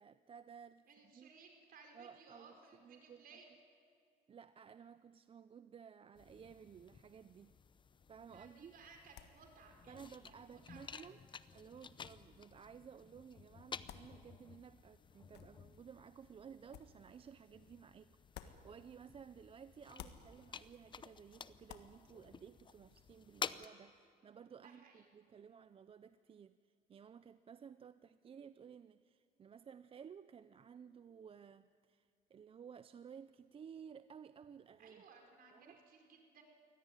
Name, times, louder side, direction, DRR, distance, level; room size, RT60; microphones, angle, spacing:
voice 1, 0.0-0.8 1.1-1.3 1.9-3.4 4.3-7.5 8.1-8.7 9.9-11.2 11.5-35.0 35.5-35.8, right 7 dB, 35° right, 13 dB, 0.5 m, -56 dB
voice 2, 0.9-3.5 8.3-11.0 24.5-25.0 34.8-36.4, right 5 dB, 60° right, 3 dB, 5.0 m, -61 dB
sound 1, 6.1-23.7, left 6 dB, 30° left, 0.7 m, -52 dB
sound 2, 8.3-19.4 19.7-23.1, left 10 dB, 80° left, 1.5 m, -61 dB
23.0 x 17.5 x 9.8 m, 2.3 s
cardioid pair, 110°, 17 cm